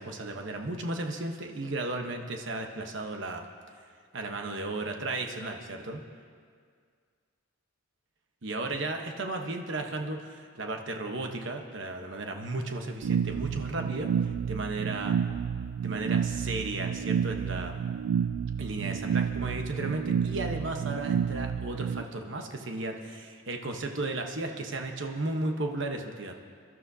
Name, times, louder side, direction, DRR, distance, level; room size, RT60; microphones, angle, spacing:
voice 1, 0.0-3.5 4.1-6.0 8.4-15.1 15.8-17.8 18.6-26.3, right 2 dB, 55° right, 3 dB, 1.0 m, -34 dB
sound 1, 13.0-22.0, right 7 dB, 75° right, 0.4 m, -30 dB
23.5 x 12.5 x 2.7 m, 2.1 s
head